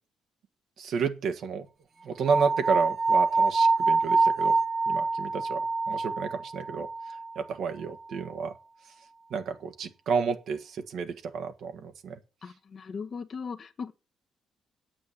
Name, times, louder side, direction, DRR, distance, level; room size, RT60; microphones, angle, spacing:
voice 1, 0.8-1.7 2.0-4.5 4.9-6.9 7.3-8.5 9.3-12.2, right 5 dB, 70° right, 1.6 m, -31 dB
sound 1, 2.2-7.3, right 3 dB, 50° right, 1.7 m, -25 dB
voice 2, 12.4-13.9, left 5 dB, 50° left, 1.1 m, -38 dB
8.6 x 8.4 x 8.0 m
cardioid pair, 90°, 0 cm